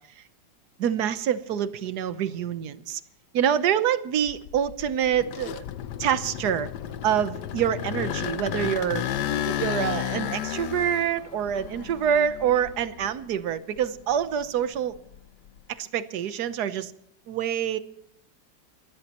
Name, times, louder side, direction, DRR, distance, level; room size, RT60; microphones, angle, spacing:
voice 1, 0.8-3.0 3.3-5.6 6.0-6.7 7.0-9.0 9.4-14.9 15.7-16.9 17.3-17.8, right 9 dB, 65° right, 12 dB, 1.4 m, -26 dB
sound 1, 4.3-13.3 13.8-15.6, left 11 dB, 75° left, 1.3 m, -33 dB
29.0 x 12.5 x 3.0 m, 0.75 s
omnidirectional pair, 1.9 m